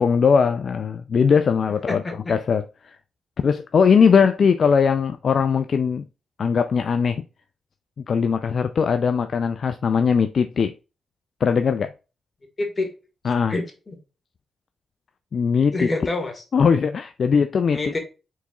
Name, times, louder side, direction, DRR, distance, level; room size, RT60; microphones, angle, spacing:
voice 1, 0.0-2.0 2.3-3.0 3.4-6.0 6.4-7.2 8.1-10.7 11.4-11.9 13.2-13.5 15.3-15.9 16.5-17.8, left 6 dB, 60° left, 0.4 m, -20 dB
voice 2, 1.9-2.3 12.6-12.9 13.5-14.0 15.7-16.4 17.7-18.0, left 2 dB, 35° left, 1.7 m, -27 dB
4.6 x 4.1 x 2.3 m
supercardioid pair, 50°, 0 cm